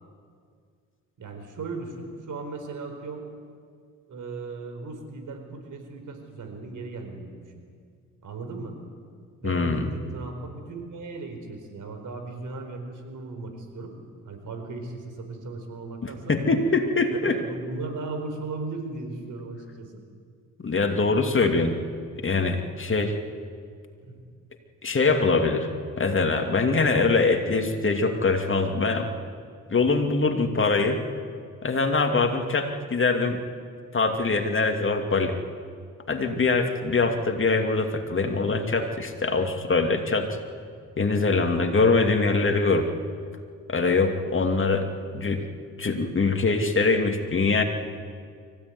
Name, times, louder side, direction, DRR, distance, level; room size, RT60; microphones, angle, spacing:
voice 1, 1.2-3.3 4.1-7.4 8.2-8.8 9.4-13.9 14.2-16.3 17.1-20.0 24.0-24.2, right 3 dB, 65° right, 5 dB, 4.6 m, -37 dB
voice 2, 9.4-9.9 16.3-17.4 20.6-21.8 22.2-23.2 24.8-25.7 26.0-29.1 29.7-31.0 31.6-33.4 33.9-35.4 36.1-40.4 41.0-43.0 43.7-44.9 45.1-45.4 45.8-47.6, left 3 dB, 40° left, 5 dB, 2.6 m, -23 dB
24.5 x 16.5 x 9.7 m, 2.1 s
cardioid pair, 65°, 33 cm